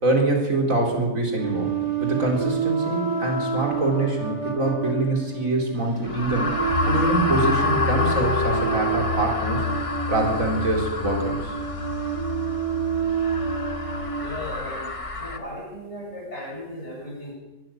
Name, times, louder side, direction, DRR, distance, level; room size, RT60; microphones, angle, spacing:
voice 1, 0.0-1.7 2.0-6.5 6.9-9.6 10.1-11.5, right 2 dB, 70° right, 1 dB, 4.5 m, -24 dB
sound 1, 1.4-14.3, right 5 dB, 30° right, 1.8 m, -29 dB
sound 2, 6.0-15.4, left 2 dB, 25° left, 1.4 m, -29 dB
sound 3, 6.7-14.7, left 6 dB, 75° left, 5.1 m, -32 dB
voice 2, 14.2-17.3, left 1 dB, 50° left, -3 dB, 8.5 m, -36 dB
22.0 x 13.0 x 9.2 m, 1.1 s
omnidirectional pair, 1.5 m